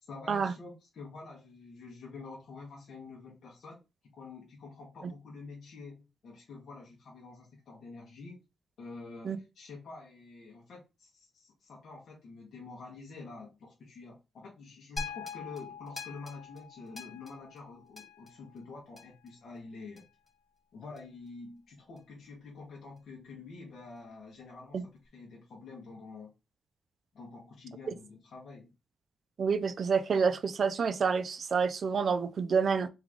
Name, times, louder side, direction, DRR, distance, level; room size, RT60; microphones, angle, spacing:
voice 1, 0.0-3.8 4.1-8.4 8.8-20.1 20.7-24.8 25.1-26.3 27.1-28.7, left 3 dB, 65° left, 1.3 m, -47 dB
sound 1, 15.0-19.3 20.0-20.1, left 5 dB, 25° left, 1.5 m, -43 dB
voice 2, 29.4-32.9, right 5 dB, 45° right, 0.5 m, -28 dB
3.5 x 3.4 x 3.6 m
wide cardioid pair, 140°, 0 cm